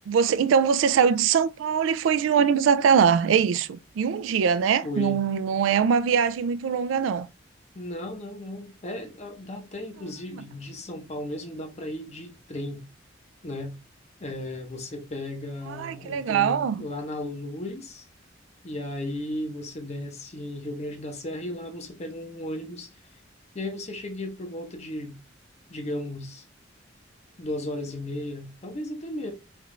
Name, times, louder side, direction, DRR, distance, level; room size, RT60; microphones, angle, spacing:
voice 1, 0.1-7.3 10.3-10.4 15.7-16.9, right 7 dB, 80° right, 0.3 m, -22 dB
voice 2, 4.8-5.2 7.7-12.8 13.4-13.7 14.2-18.1 18.6-22.9 23.5-25.2 25.7-26.4 27.4-29.3, left 1 dB, 35° left, 0.7 m, -35 dB
3.3 x 2.4 x 3.0 m
head